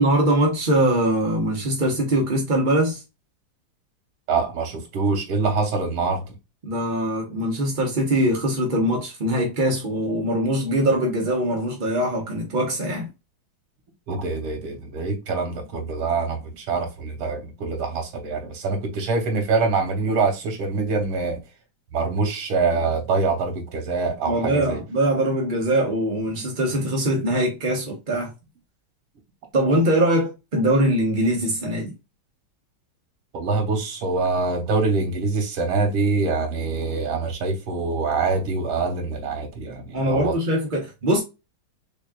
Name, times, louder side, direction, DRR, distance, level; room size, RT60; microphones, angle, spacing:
voice 1, 0.0-3.0 6.6-13.1 24.3-28.3 29.5-31.9 39.9-41.2, right 1 dB, 55° right, 0.5 m, -22 dB
voice 2, 4.3-6.3 14.1-21.4 21.9-24.8 33.3-40.4, right 4 dB, 90° right, 2.0 m, -25 dB
4.1 x 3.6 x 2.2 m
omnidirectional pair, 2.3 m